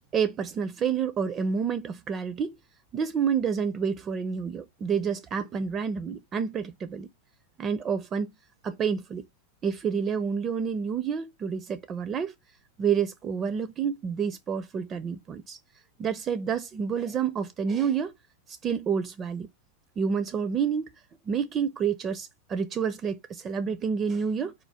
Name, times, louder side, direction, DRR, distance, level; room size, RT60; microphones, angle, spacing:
voice 1, 0.1-2.5 2.9-7.1 7.6-8.3 8.6-9.3 9.6-12.3 12.8-15.6 16.0-18.1 18.5-19.5 20.0-20.9 21.3-24.5, right 6 dB, 25° right, 0.5 m, -29 dB
4.3 x 2.3 x 4.7 m
figure-of-eight pair, 90°, 0 cm